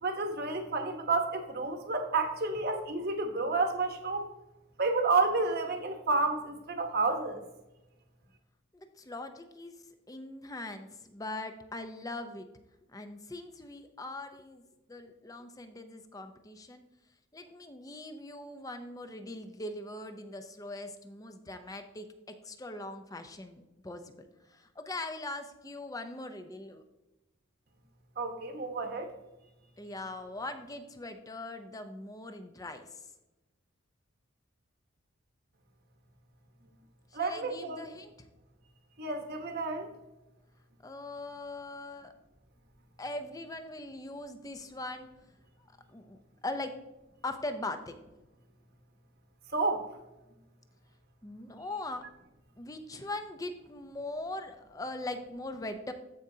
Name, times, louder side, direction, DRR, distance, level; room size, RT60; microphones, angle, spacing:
voice 1, 0.0-4.3 4.8-7.4 28.2-29.1 37.1-37.8 39.0-39.9 49.5-49.9, right 3 dB, 50° right, 4 dB, 1.1 m, -30 dB
voice 2, 8.7-9.7 10.1-12.5 12.9-14.6 14.9-16.8 17.3-26.8 29.8-33.1 37.1-38.3 40.8-42.1 43.0-45.1 45.9-46.7 47.2-48.0 51.2-52.0 52.6-55.9, left 2 dB, 15° left, 7 dB, 0.6 m, -41 dB
14.0 x 5.0 x 2.8 m, 1.0 s
head